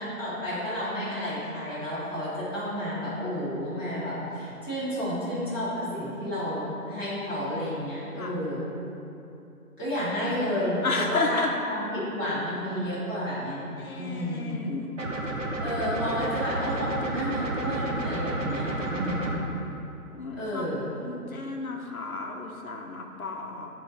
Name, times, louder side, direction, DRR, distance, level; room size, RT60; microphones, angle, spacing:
voice 1, 0.0-8.7 9.8-11.4 11.7-14.6 15.6-19.4 20.3-21.0, equal, 15° right, -15 dB, 1.2 m, -31 dB
voice 2, 10.8-11.5 13.8-15.1 18.8-19.2 20.1-20.7 20.9-23.7, left 3 dB, 65° left, 2 dB, 0.8 m, -33 dB
sound 1, 15.0-19.4, right 1 dB, 55° right, 1.0 m, -31 dB
9.2 x 3.8 x 4.4 m, 2.8 s
hypercardioid pair, 180°, 46 cm